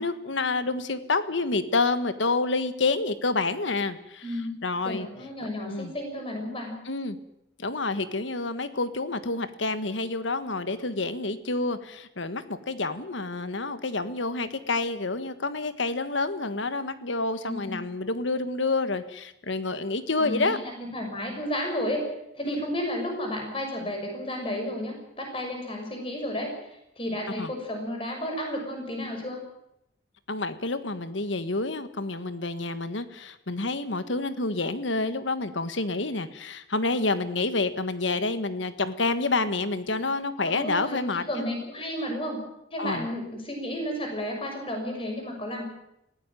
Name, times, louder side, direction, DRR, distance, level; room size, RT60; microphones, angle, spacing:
voice 1, 0.0-4.2 4.6-5.1 5.7-5.9 6.9-7.2 7.6-20.6 22.4-22.6 27.4-27.5 30.3-41.5 42.8-43.1, left 3 dB, 85° left, 11 dB, 1.5 m, -28 dB
voice 2, 4.8-6.7 17.4-17.8 20.2-22.0 22.3-26.5 27.0-29.4 40.5-41.0 41.3-42.4 42.7-45.7, left 1 dB, 30° left, 2 dB, 6.2 m, -32 dB
20.0 x 16.0 x 9.1 m, 0.82 s
head